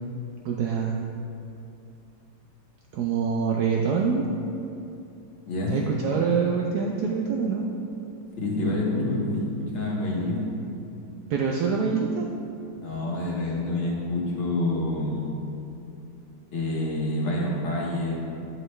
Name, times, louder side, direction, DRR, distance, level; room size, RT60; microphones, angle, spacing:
voice 1, 0.4-1.0 2.9-4.3 5.7-7.7 11.3-12.3, right 5 dB, 90° right, 0 dB, 0.8 m, -25 dB
voice 2, 5.5-5.8 8.4-10.5 12.8-15.3 16.5-18.2, left 2 dB, 75° left, -4 dB, 2.0 m, -27 dB
9.5 x 5.3 x 3.2 m, 2.7 s
omnidirectional pair, 2.3 m